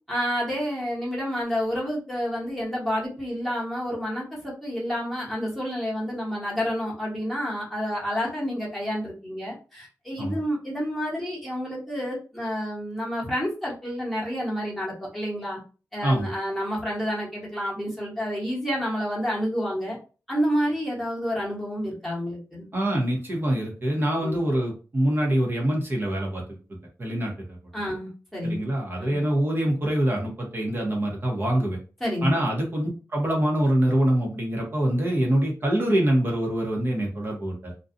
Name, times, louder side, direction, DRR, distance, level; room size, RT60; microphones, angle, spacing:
voice 1, 0.1-15.6 15.9-20.0 20.3-22.7 24.2-24.4 27.7-28.7 29.0-29.2 32.0-32.4, equal, ahead, -5 dB, 1.1 m, -29 dB
voice 2, 22.7-27.6 28.4-31.8 32.2-37.7, right 1 dB, 35° right, -1 dB, 0.9 m, -25 dB
2.5 x 2.3 x 2.5 m, 0.35 s
wide cardioid pair, 135°, 6 cm